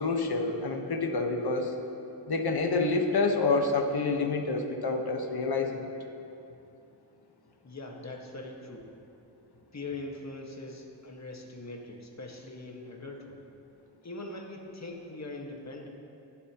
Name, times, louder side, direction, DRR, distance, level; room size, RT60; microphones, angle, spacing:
voice 1, 0.0-1.7 2.3-5.8, left 3 dB, 55° left, 4 dB, 1.3 m, -28 dB
voice 2, 7.6-8.9 9.7-13.4 14.0-15.9, left 2 dB, 35° left, 1 dB, 1.7 m, -41 dB
21.5 x 8.2 x 3.0 m, 2.7 s
wide cardioid pair, 85°, 46 cm